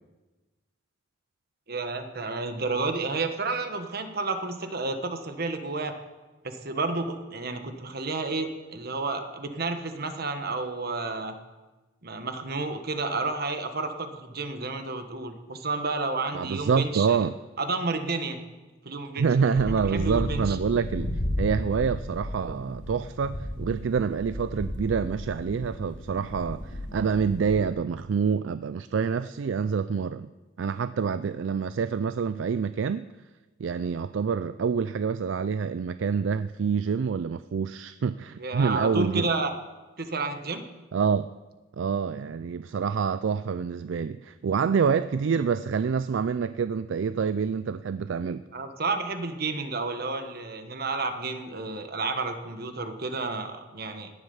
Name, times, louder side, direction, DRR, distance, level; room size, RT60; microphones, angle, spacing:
voice 1, 1.7-5.9 6.4-11.4 12.0-17.3 17.6-18.4 18.8-19.3 19.8-20.6 38.4-39.5 40.0-40.6 48.5-54.1, right 3 dB, 50° right, 7 dB, 1.3 m, -31 dB
voice 2, 16.3-17.3 19.2-21.1 21.4-30.3 30.6-33.1 33.6-39.3 40.9-41.3 41.8-48.4, right 6 dB, 70° right, 13 dB, 0.4 m, -27 dB
sound 1, 19.6-27.6, left 1 dB, 60° left, 1.8 m, -34 dB
17.0 x 11.0 x 5.6 m, 1.2 s
head